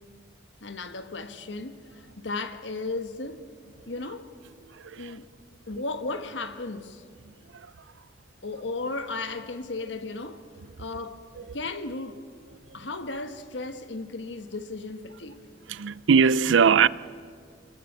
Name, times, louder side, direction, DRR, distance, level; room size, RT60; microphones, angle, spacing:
voice 1, 0.6-1.8 2.2-3.4 3.9-4.3 5.0-5.2 5.7-7.0 8.4-10.4 10.8-11.2 11.5-12.2 12.7-15.4, left 3 dB, 75° left, 1.4 m, -35 dB
voice 2, 4.7-5.2 7.5-7.7 11.3-11.6 12.7-12.8 15.7-16.9, right 6 dB, 85° right, 0.5 m, -22 dB
25.0 x 21.5 x 6.7 m
head